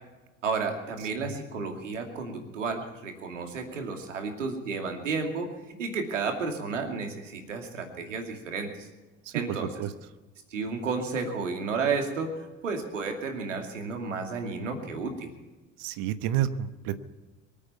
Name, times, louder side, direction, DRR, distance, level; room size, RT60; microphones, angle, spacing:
voice 1, 0.4-8.9 9.3-9.8 10.5-15.3, right 4 dB, 85° right, 4 dB, 2.6 m, -32 dB
voice 2, 15.8-17.0, right 11 dB, 60° right, 12 dB, 1.2 m, -29 dB
24.5 x 8.9 x 5.7 m, 1.1 s
hypercardioid pair, 60°, 37 cm